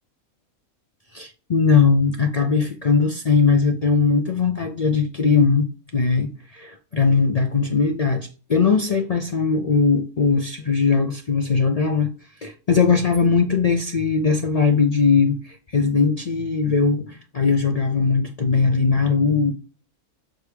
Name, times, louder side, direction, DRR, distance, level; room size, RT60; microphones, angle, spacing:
voice 1, 1.1-5.7 5.9-12.1 12.4-19.5, left 5 dB, 65° left, 0.3 m, -20 dB
6.3 x 4.8 x 3.3 m
omnidirectional pair, 1.5 m